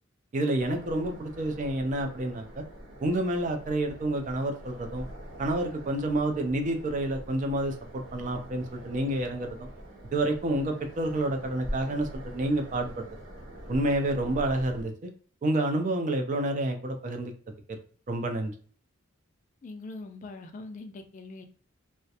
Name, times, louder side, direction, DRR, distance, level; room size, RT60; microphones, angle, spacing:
voice 1, 0.3-2.6 3.0-5.1 5.4-9.7 10.1-13.0 13.7-15.1 15.4-17.3 17.7-17.8 18.1-18.5, right 1 dB, 40° right, 5 dB, 0.4 m, -29 dB
sound 1, 0.6-14.8, equal, 70° right, 1.0 m, -44 dB
voice 2, 19.6-21.5, left 3 dB, 40° left, 6 dB, 0.3 m, -42 dB
2.3 x 2.1 x 2.7 m, 0.43 s
head